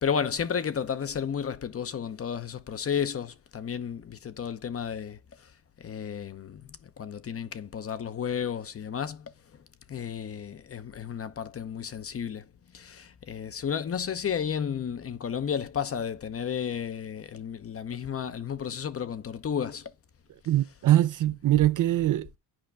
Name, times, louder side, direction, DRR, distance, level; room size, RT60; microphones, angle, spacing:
voice 1, 0.0-5.5 5.8-9.3 9.9-12.5 12.7-19.9, left 7 dB, 35° left, 0.7 m, -32 dB
voice 2, 20.5-22.4, right 13 dB, 50° right, 0.5 m, -23 dB
8.9 x 5.1 x 3.4 m
supercardioid pair, 80°, 42 cm